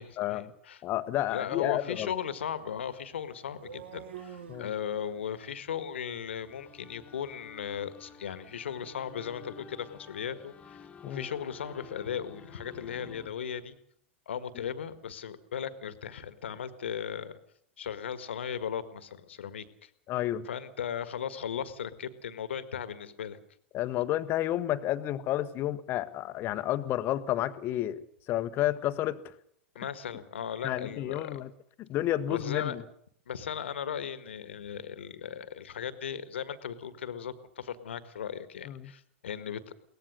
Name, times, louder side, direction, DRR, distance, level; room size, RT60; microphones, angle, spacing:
voice 1, 0.0-0.8 1.3-10.8 11.0-13.8 14.3-17.3 17.8-19.9 20.4-23.4 29.8-31.4 32.3-32.8 33.3-39.7, left 8 dB, 65° left, 12 dB, 1.7 m, -37 dB
voice 2, 0.8-2.1 4.5-4.7 11.0-11.3 20.1-20.5 23.7-29.3 30.6-31.5 31.8-32.8 38.6-38.9, left 13 dB, 35° left, 13 dB, 1.2 m, -31 dB
sound 1, 2.6-10.5, right 8 dB, 65° right, 1.9 m, -52 dB
sound 2, 6.4-13.3, left 6 dB, 15° left, 1.8 m, -51 dB
22.5 x 19.0 x 6.6 m, 0.66 s
figure-of-eight pair, 95°, 7 cm